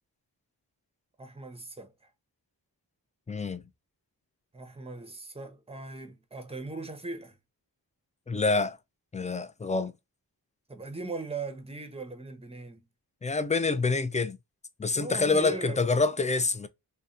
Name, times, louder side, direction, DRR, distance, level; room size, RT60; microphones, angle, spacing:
voice 1, 1.2-1.9 4.5-7.4 10.7-12.8 14.9-15.8, right 3 dB, 15° right, 0.7 m, -39 dB
voice 2, 3.3-3.6 8.3-8.8 9.1-9.9 13.2-14.4 14.8-16.7, left 3 dB, 20° left, 0.4 m, -26 dB
2.7 x 2.2 x 2.4 m
cardioid pair, 45°, 41 cm